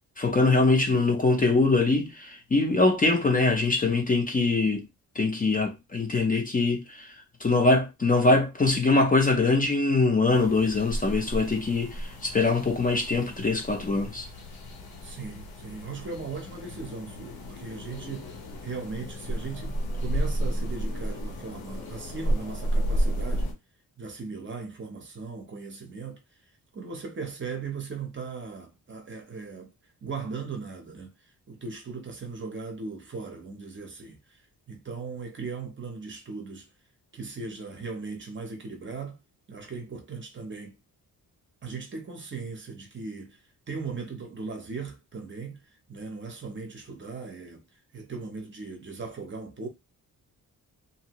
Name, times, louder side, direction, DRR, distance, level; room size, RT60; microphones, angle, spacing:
voice 1, 0.2-4.8 5.2-14.3, left 3 dB, 25° left, 0.5 m, -23 dB
sound 1, 10.3-23.5, equal, 80° left, 1.0 m, -32 dB
voice 2, 13.1-13.5 15.0-18.3 18.6-23.5 24.0-26.2 26.7-29.7 30.0-31.1 31.5-34.4 34.7-36.7 37.1-39.2 39.5-40.8 41.6-43.4 43.7-45.6 45.9-47.6 47.9-49.7, right 4 dB, 35° right, 0.7 m, -38 dB
2.7 x 2.6 x 2.9 m
wide cardioid pair, 155°, 36 cm